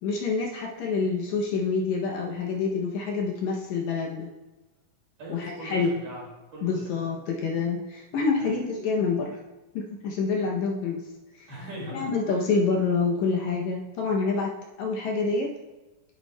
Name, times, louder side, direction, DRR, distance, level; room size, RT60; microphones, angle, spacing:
voice 1, 0.0-4.3 5.3-5.9 6.6-9.4 9.8-11.0 11.4-11.5 11.9-14.5 14.8-15.5, left 4 dB, 70° left, 0 dB, 2.0 m, -27 dB
voice 2, 5.2-7.1 8.4-8.5 11.5-12.1 12.3-12.4, right 1 dB, 55° right, -4 dB, 3.2 m, -40 dB
9.6 x 9.0 x 2.2 m, 1.1 s
omnidirectional pair, 3.7 m